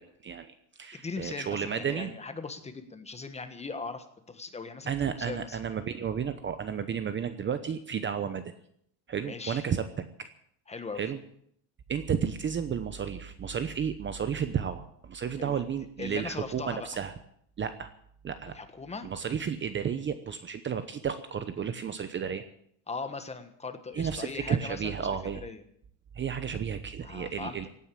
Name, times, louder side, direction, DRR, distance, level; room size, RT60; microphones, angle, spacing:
voice 1, 0.0-2.1 4.9-8.4 9.1-10.3 11.0-11.2 11.9-17.1 17.6-17.9 18.2-18.5 19.0-22.4 23.9-25.4 26.1-27.7, right 7 dB, 25° right, 11 dB, 0.9 m, -32 dB
voice 2, 0.9-5.6 9.2-9.6 10.7-11.1 15.4-15.6 16.0-17.0 18.5-19.1 22.9-25.6 27.0-27.7, left 4 dB, 15° left, 9 dB, 1.4 m, -39 dB
17.0 x 9.5 x 8.6 m, 0.69 s
cardioid pair, 140°, 45 cm